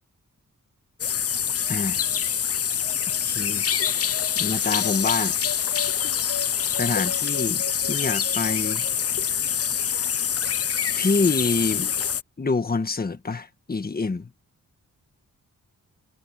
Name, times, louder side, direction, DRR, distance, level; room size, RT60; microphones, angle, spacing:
sound 1, 1.0-12.2, left 8 dB, 45° left, 0.5 m, -25 dB
voice 1, 1.7-2.0 3.2-3.6 4.4-5.4 6.8-8.8 11.0-11.9 12.4-14.3, left 4 dB, 25° left, 1.5 m, -26 dB
wide cardioid pair, 160°, 33 cm